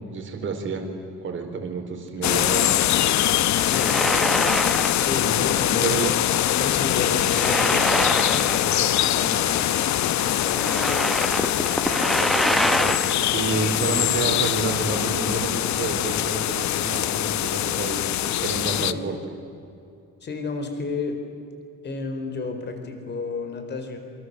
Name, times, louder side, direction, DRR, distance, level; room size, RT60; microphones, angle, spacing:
voice 1, 0.1-0.9 1.2-2.7 5.8-6.1 12.1-18.1 18.4-19.2, right 4 dB, 40° right, 3 dB, 4.5 m, -29 dB
sound 1, 2.2-18.9, left 12 dB, 65° left, 1.0 m, -23 dB
sound 2, 3.6-5.2 5.5-5.7 7.1-9.0 9.2-9.3 10.2-13.3, equal, ahead, 0.9 m, -25 dB
voice 2, 3.7-4.0 5.0-5.9 6.6-11.1 18.8-19.0 20.2-21.2 21.8-24.0, left 3 dB, 35° left, 6 dB, 4.3 m, -32 dB
26.5 x 26.0 x 8.1 m, 2.6 s
cardioid pair, 165°, 31 cm